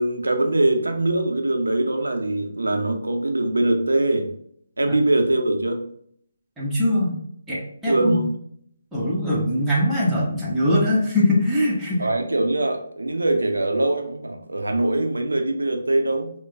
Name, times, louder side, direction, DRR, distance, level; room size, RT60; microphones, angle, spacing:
voice 1, 0.0-4.4 4.8-5.9 7.9-8.4 12.0-16.3, right 2 dB, 75° right, 4 dB, 0.7 m, -22 dB
voice 2, 6.6-7.2 7.5-8.2 8.9-12.1, left 1 dB, 5° right, -7 dB, 1.1 m, -22 dB
4.8 x 2.3 x 3.3 m, 0.66 s
figure-of-eight pair, 145°, 0 cm